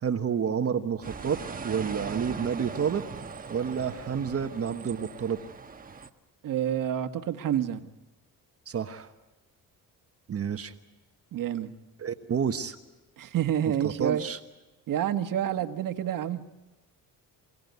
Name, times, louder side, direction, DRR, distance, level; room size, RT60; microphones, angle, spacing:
voice 1, 0.0-1.4 1.6-3.0 3.5-5.4 8.7-9.1 10.3-10.7 12.0-12.8 13.8-14.4, right 7 dB, 40° right, 7 dB, 1.2 m, -29 dB
sound 1, 1.0-6.1, right 5 dB, 25° right, 1.2 m, -40 dB
voice 2, 6.4-7.8 11.3-11.7 13.2-14.2 14.9-16.4, right 10 dB, 65° right, 8 dB, 1.6 m, -28 dB
28.5 x 17.0 x 9.4 m, 1.1 s
cardioid pair, 115°, 36 cm